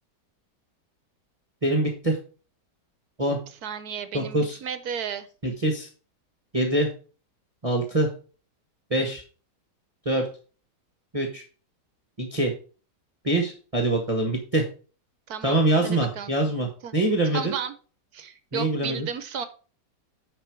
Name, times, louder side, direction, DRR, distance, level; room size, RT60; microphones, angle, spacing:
voice 1, 1.6-2.2 3.2-3.4 4.1-4.6 5.4-5.9 6.5-6.9 7.6-8.1 8.9-9.2 10.0-10.3 11.1-11.4 12.2-12.5 13.2-14.6 15.4-17.5 18.5-19.1, right 1 dB, 20° right, 2 dB, 1.5 m, -24 dB
voice 2, 3.6-5.3 15.3-16.3 16.8-17.0 17.3-17.8 18.1-19.5, right 7 dB, 65° right, 11 dB, 1.3 m, -33 dB
10.0 x 4.8 x 4.7 m, 0.37 s
omnidirectional pair, 1.9 m